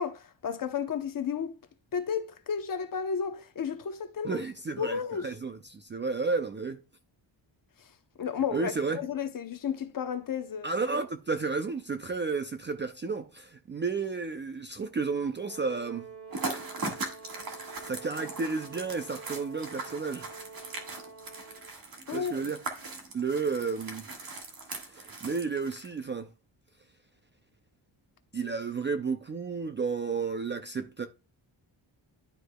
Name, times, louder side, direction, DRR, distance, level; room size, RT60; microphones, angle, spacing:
voice 1, 0.0-1.6 1.9-4.4 4.8-5.3 7.8-7.9 8.2-10.7 22.1-22.5, left 7 dB, 45° left, 0.8 m, -33 dB
voice 2, 4.2-6.8 8.5-9.0 10.6-16.1 17.9-20.3 22.1-22.6 23.1-24.1 24.9-26.3 28.3-31.1, right 4 dB, 25° right, 0.4 m, -32 dB
Brass instrument, 15.4-21.7, right 4 dB, 65° right, 3.6 m, -48 dB
sound 1, 16.3-26.0, right 3 dB, 45° right, 1.6 m, -39 dB
11.0 x 4.7 x 2.2 m
wide cardioid pair, 150°, 48 cm